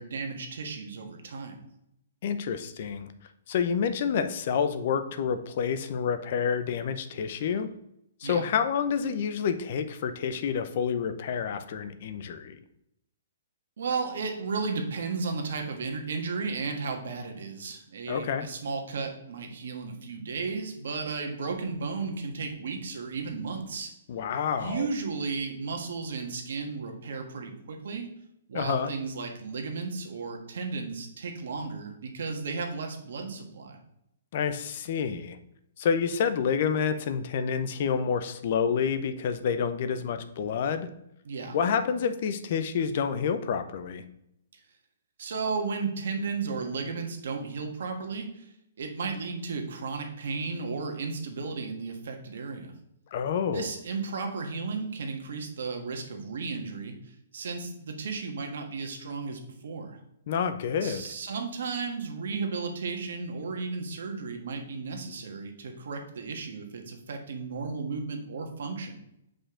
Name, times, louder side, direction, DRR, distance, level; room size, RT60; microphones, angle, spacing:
voice 1, 0.0-1.6 8.2-8.4 13.8-23.9 24.5-28.1 28.5-33.8 41.2-41.6 45.2-48.5 48.8-52.7 53.5-57.0 57.3-60.0 60.8-69.0, right 4 dB, 70° right, 4 dB, 1.4 m, -34 dB
voice 2, 2.2-3.1 3.5-7.7 8.2-12.6 18.1-18.5 24.1-24.9 28.5-28.9 34.3-35.4 35.8-40.9 41.5-44.0 53.1-53.7 60.3-61.0, left 7 dB, 50° left, 10 dB, 0.6 m, -28 dB
6.6 x 5.2 x 3.7 m, 0.79 s
hypercardioid pair, 155°, 0 cm